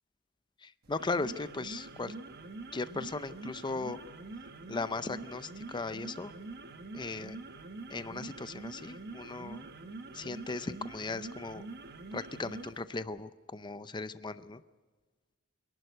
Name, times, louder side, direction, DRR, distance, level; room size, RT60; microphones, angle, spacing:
voice 1, 0.6-2.1 2.7-4.0 4.7-6.3 6.9-7.4 7.9-9.7 10.1-11.6 12.1-14.6, left 3 dB, 20° left, 13 dB, 0.5 m, -37 dB
sound 1, 0.8-12.8, right 3 dB, 50° right, 1.1 m, -45 dB
26.0 x 11.5 x 9.4 m, 1.3 s
head